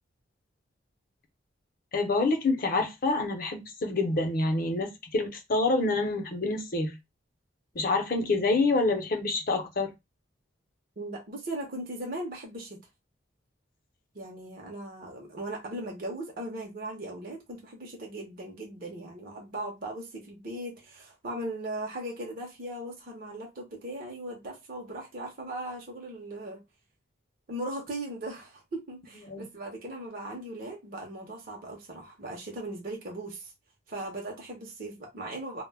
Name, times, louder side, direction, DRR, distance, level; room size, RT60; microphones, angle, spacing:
voice 1, 1.9-6.9 7.7-9.9 29.3-29.5, left 3 dB, 45° left, 0.6 m, -27 dB
voice 2, 11.0-12.8 14.1-26.6 27.5-33.5 33.9-35.6, right 1 dB, 45° right, 0.6 m, -38 dB
2.1 x 2.1 x 3.3 m
head